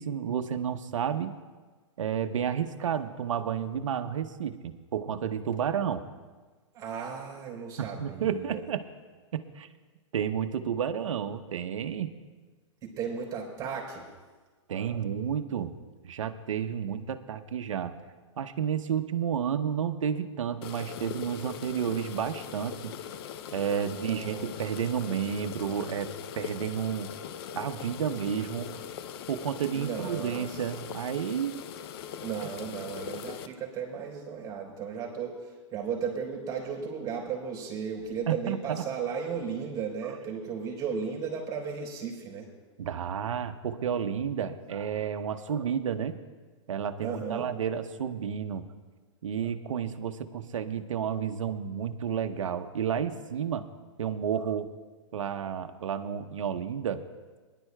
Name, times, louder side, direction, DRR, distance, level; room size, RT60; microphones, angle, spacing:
voice 1, 0.0-1.3 2.0-6.0 7.8-8.8 9.3-9.7 10.1-12.1 14.7-15.7 16.0-17.9 18.4-23.0 23.5-26.1 26.4-27.1 27.6-28.7 29.3-31.6 38.3-38.8 40.0-40.2 42.8-46.2 46.7-48.7 49.2-53.7 54.0-54.7 55.1-57.0, right 8 dB, 80° right, 7 dB, 0.8 m, -31 dB
voice 2, 6.7-8.6 12.8-14.0 23.9-24.5 29.7-30.6 32.2-42.4 47.0-47.4, right 6 dB, 20° right, -1 dB, 3.8 m, -35 dB
sound 1, 20.6-33.5, left 9 dB, 50° left, 0.5 m, -41 dB
23.0 x 11.0 x 2.2 m, 1.4 s
hypercardioid pair, 130°, 16 cm